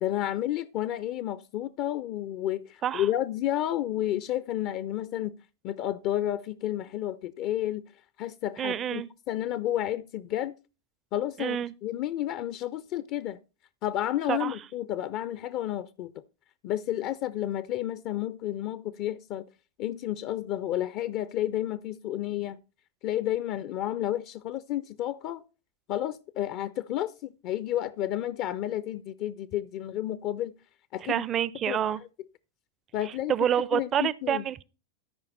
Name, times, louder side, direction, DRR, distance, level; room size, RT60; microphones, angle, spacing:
voice 1, 0.0-5.3 5.6-7.8 8.2-10.5 11.1-13.4 13.8-16.1 16.6-19.4 19.8-22.6 23.0-25.4 25.9-30.5 30.9-31.2 31.7-31.8 32.9-33.3 33.7-34.4, left 12 dB, 40° left, 0.4 m, -31 dB
voice 2, 8.6-9.1 11.4-11.7 14.3-14.6 31.0-32.0 33.0-34.6, right 10 dB, 30° right, 0.4 m, -28 dB
13.0 x 5.1 x 4.0 m
figure-of-eight pair, 90°, 0 cm